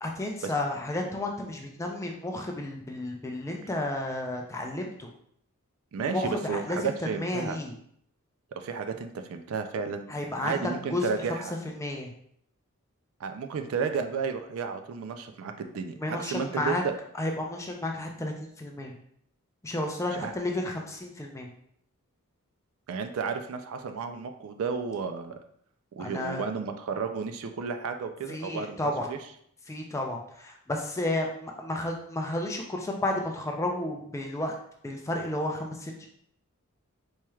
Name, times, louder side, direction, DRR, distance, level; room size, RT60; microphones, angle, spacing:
voice 1, 0.0-5.1 6.0-7.7 10.1-10.6 10.9-11.4 11.6-12.1 16.0-16.8 17.2-19.0 19.6-21.5 26.0-26.4 28.3-29.1 29.7-34.5 34.8-36.1, left 1 dB, 15° left, 1 dB, 0.4 m, -32 dB
voice 2, 5.9-7.6 8.6-10.1 10.4-11.5 13.2-16.9 20.1-20.3 22.9-25.4 25.9-28.8 29.1-29.2, right 5 dB, 65° right, 7 dB, 0.3 m, -32 dB
4.4 x 3.1 x 2.3 m, 0.68 s
head